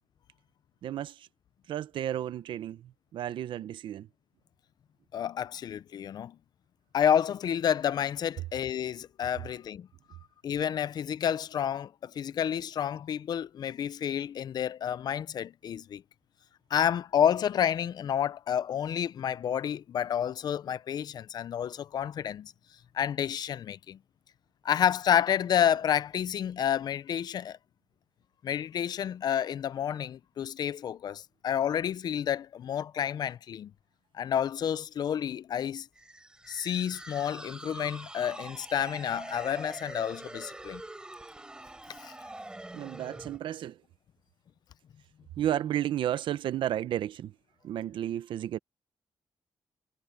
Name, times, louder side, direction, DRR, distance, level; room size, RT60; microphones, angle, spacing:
voice 1, 0.8-1.3 1.7-4.1 42.7-43.8 45.4-47.3 47.6-48.6, right 11 dB, 90° right, 0.7 m, -32 dB
voice 2, 5.1-6.4 6.9-9.9 10.4-16.0 16.7-22.5 22.9-24.0 24.6-27.6 28.4-33.7 34.1-35.9 36.5-40.8 42.0-42.1, left 9 dB, 55° left, 0.5 m, -30 dB
sound 1, 36.0-43.4, right 2 dB, 10° right, 4.3 m, -44 dB
wide cardioid pair, 160°, 8 cm